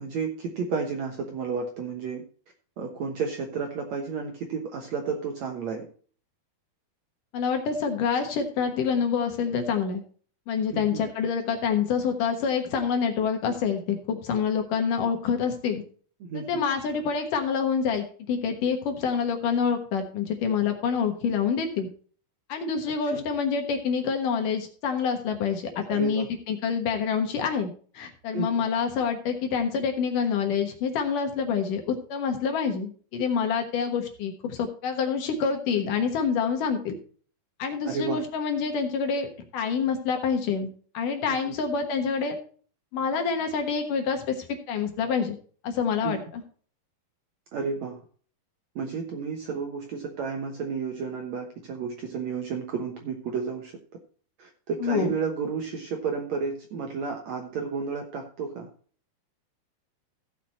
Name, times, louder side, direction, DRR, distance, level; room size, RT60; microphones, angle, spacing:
voice 1, 0.0-2.2 2.8-5.9 10.7-11.0 16.2-16.6 22.9-23.2 25.9-26.3 28.3-28.7 37.9-38.2 41.3-41.5 46.0-46.2 47.5-48.0 48.8-53.7 54.4-58.7, right 5 dB, 65° right, 3 dB, 1.9 m, -32 dB
voice 2, 7.3-10.0 10.5-15.8 16.3-21.9 22.5-36.9 37.6-42.4 42.9-45.4 45.6-46.4 54.8-55.1, left 6 dB, 65° left, 5 dB, 2.6 m, -27 dB
15.5 x 6.0 x 4.2 m, 0.44 s
omnidirectional pair, 4.5 m